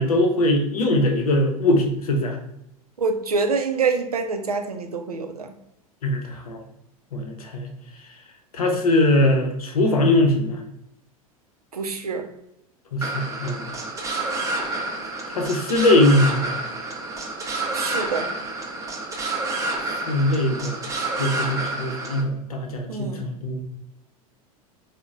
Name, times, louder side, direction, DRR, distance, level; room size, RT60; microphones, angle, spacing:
voice 1, 0.0-2.4 6.0-6.6 7.1-7.7 8.5-10.6 12.9-13.7 15.3-16.5 20.1-20.8 21.2-23.6, left 1 dB, 75° left, 3 dB, 0.7 m, -21 dB
voice 2, 3.0-5.5 11.7-12.3 17.7-18.3 22.9-23.2, right 4 dB, 85° right, 6 dB, 0.4 m, -26 dB
sound 1, 13.0-22.2, right 2 dB, 15° right, 0.6 m, -29 dB
3.8 x 2.1 x 2.3 m, 0.81 s
figure-of-eight pair, 85°, 19 cm